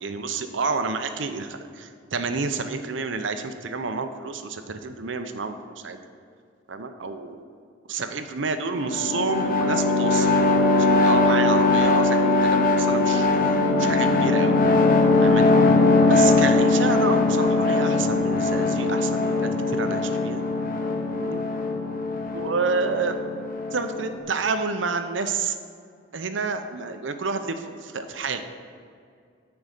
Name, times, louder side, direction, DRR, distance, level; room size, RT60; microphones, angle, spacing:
voice 1, 0.0-6.0 6.7-7.4 7.9-10.5 10.7-13.4 13.8-14.6 15.2-15.5 16.1-20.4 21.1-21.4 22.3-23.2 23.7-25.5 26.1-28.6, right 4 dB, 80° right, 8 dB, 0.7 m, -29 dB
sound 1, 8.7-24.2, left 3 dB, 50° left, 0.8 m, -21 dB
9.4 x 4.8 x 6.6 m, 2.2 s
head